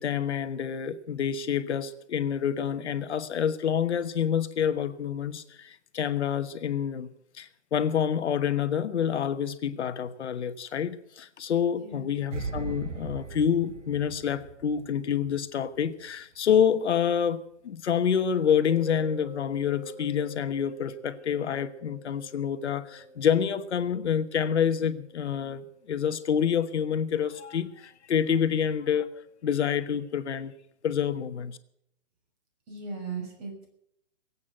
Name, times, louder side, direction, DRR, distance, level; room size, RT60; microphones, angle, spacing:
voice 1, 0.0-7.1 7.3-30.5 30.8-31.6, left 8 dB, 65° left, 10 dB, 1.2 m, -27 dB
voice 2, 11.7-12.2 32.7-33.7, right 4 dB, 30° right, 3 dB, 6.3 m, -38 dB
sound 1, 12.3-15.5 15.8-16.0, right 4 dB, 90° right, 1.6 m, -38 dB
Mallet percussion, 18.7-27.3, right 2 dB, 65° right, 6.9 m, -49 dB
21.0 x 8.5 x 7.9 m, 0.74 s
hypercardioid pair, 155°, 36 cm